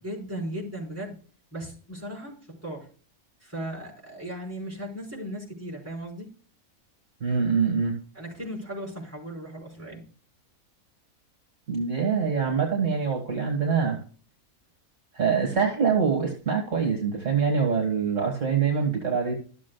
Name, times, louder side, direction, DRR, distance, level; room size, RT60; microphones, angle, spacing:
voice 1, 0.0-1.2 1.5-2.9 3.4-6.3 8.1-10.1, right 1 dB, 10° right, -3 dB, 4.2 m, -37 dB
voice 2, 7.2-7.9 11.7-14.0 15.1-19.3, right 6 dB, 55° right, 2 dB, 2.0 m, -24 dB
13.5 x 7.3 x 2.3 m, 0.40 s
omnidirectional pair, 1.6 m